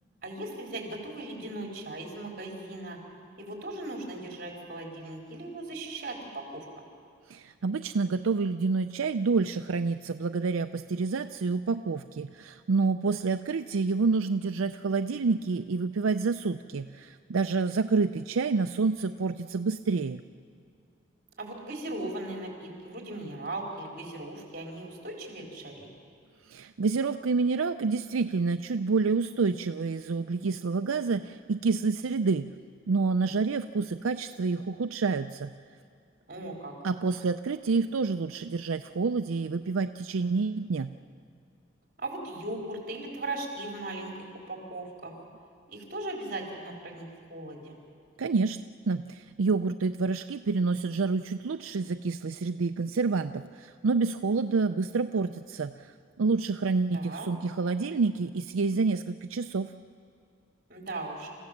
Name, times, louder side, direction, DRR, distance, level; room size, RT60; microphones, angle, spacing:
voice 1, 0.2-3.0 3.4-6.6 21.4-25.9 36.3-36.7 42.0-44.1 44.5-45.1 45.7-47.7 56.9-57.3 60.7-61.3, right 2 dB, 45° right, -1 dB, 4.4 m, -38 dB
voice 2, 7.3-20.2 26.5-32.5 32.9-35.5 36.8-40.9 48.2-48.6 48.9-55.9 56.2-59.7, right 4 dB, 90° right, 8 dB, 0.5 m, -28 dB
28.0 x 15.5 x 7.3 m, 2.4 s
head